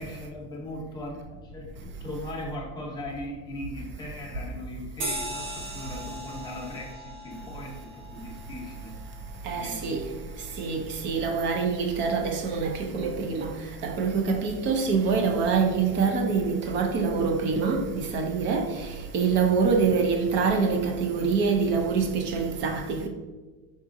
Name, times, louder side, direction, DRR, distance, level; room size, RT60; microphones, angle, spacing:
voice 1, 0.0-9.0 9.6-9.9 19.8-19.9, left 1 dB, 10° left, 0.7 m, -39 dB
sound 1, 5.0-9.9, right 1 dB, 65° right, 1.2 m, -39 dB
voice 2, 9.5-10.0 10.6-13.5 13.8-18.7 19.1-23.1, right 5 dB, 35° right, 0.4 m, -25 dB
4.8 x 3.7 x 2.5 m
cardioid pair, 170°, 36 cm